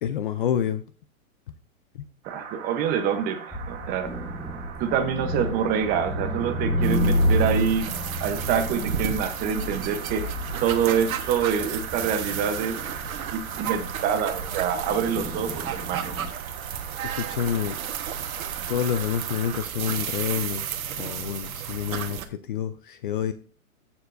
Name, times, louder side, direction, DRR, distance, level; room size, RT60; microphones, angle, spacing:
voice 1, 0.0-0.8 1.9-2.1 17.0-17.8 18.7-23.3, left 9 dB, 40° left, 12 dB, 0.4 m, -28 dB
sound 1, 2.2-19.6, right 7 dB, 50° right, 2.4 m, -41 dB
voice 2, 2.3-4.1 4.8-7.9 8.2-10.2 10.6-12.8 13.3-16.2, right 7 dB, 20° right, 8 dB, 0.8 m, -26 dB
sound 2, 3.5-16.3, equal, 5° left, 1.1 m, -30 dB
sound 3, 6.8-22.3, right 8 dB, 70° right, 1.3 m, -33 dB
13.5 x 7.0 x 2.5 m, 0.39 s
hypercardioid pair, 145°, 43 cm